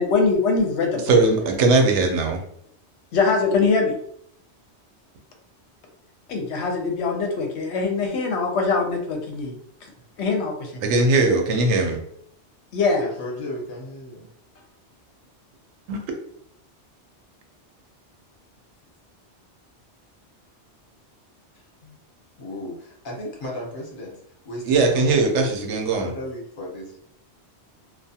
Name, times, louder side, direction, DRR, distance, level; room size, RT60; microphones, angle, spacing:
voice 1, 0.0-1.1 3.1-4.0 6.3-9.6 10.2-10.8 12.7-13.1, left 4 dB, 75° left, 2 dB, 0.9 m, -22 dB
voice 2, 1.1-2.4 10.8-12.0 15.9-16.0 24.7-26.1, right 3 dB, 85° right, 3 dB, 0.9 m, -19 dB
voice 3, 11.2-11.8 13.0-14.3 21.5-22.0 22.4-24.2 24.4-25.7 25.9-27.1, left 1 dB, 50° left, -3 dB, 0.9 m, -35 dB
2.3 x 2.3 x 2.7 m, 0.68 s
omnidirectional pair, 1.2 m